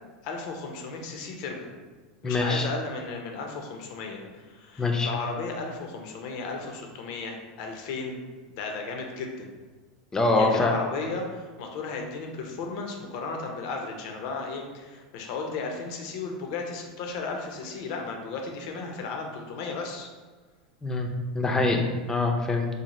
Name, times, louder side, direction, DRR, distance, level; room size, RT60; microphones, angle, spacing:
voice 1, 0.2-1.7 2.2-8.2 8.6-9.5 10.4-20.1, left 4 dB, 65° left, 2 dB, 0.6 m, -35 dB
voice 2, 2.2-2.7 4.8-5.1 10.1-10.7 20.8-21.1 21.3-22.7, left 3 dB, 15° left, 2 dB, 0.4 m, -24 dB
4.0 x 2.0 x 3.0 m, 1.4 s
supercardioid pair, 115°, 4 cm